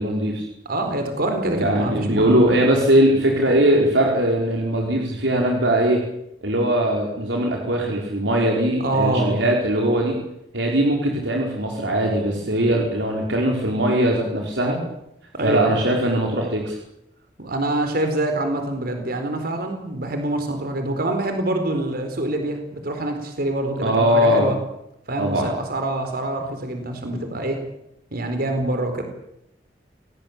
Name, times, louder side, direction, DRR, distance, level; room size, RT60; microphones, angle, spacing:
voice 1, 0.0-0.5 1.5-6.0 6.4-10.2 10.5-14.8 15.4-16.8 23.8-24.5 25.2-25.5, right 1 dB, 80° right, 0 dB, 5.1 m, -20 dB
voice 2, 0.6-2.6 3.5-3.7 8.8-9.3 15.3-15.6 17.4-24.6 25.1-27.6 28.1-29.0, right 1 dB, 55° right, 5 dB, 4.4 m, -25 dB
27.5 x 18.0 x 8.8 m, 0.82 s
head